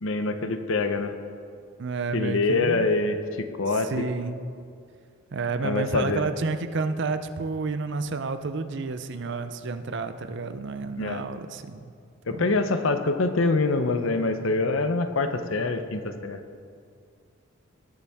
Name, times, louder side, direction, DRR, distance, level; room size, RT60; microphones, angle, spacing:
voice 1, 0.0-1.1 2.1-4.1 5.6-6.2 11.0-11.2 12.3-16.4, left 3 dB, 65° left, 8 dB, 0.7 m, -25 dB
voice 2, 1.8-2.9 3.7-4.4 5.3-11.9 12.3-12.4, right 4 dB, 55° right, 10 dB, 0.5 m, -30 dB
19.0 x 7.0 x 3.5 m, 2.3 s
head